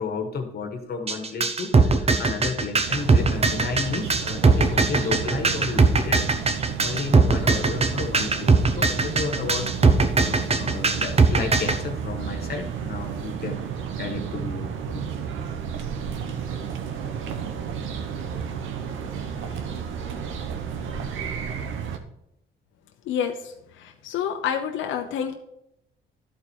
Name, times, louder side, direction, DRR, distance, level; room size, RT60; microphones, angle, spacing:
voice 1, 0.0-6.2 6.5-9.7 10.0-13.6 14.0-15.0 19.0-19.9, left 4 dB, 50° left, 4 dB, 1.4 m, -33 dB
sound 1, 1.1-11.8, right 4 dB, 30° right, 0.9 m, -19 dB
sound 2, 2.8-22.0, right 7 dB, 80° right, 1.0 m, -32 dB
voice 2, 23.1-23.4 23.8-25.3, left 8 dB, 80° left, 4 dB, 0.8 m, -28 dB
12.0 x 4.3 x 4.6 m, 0.81 s
cardioid pair, 90°, 20 cm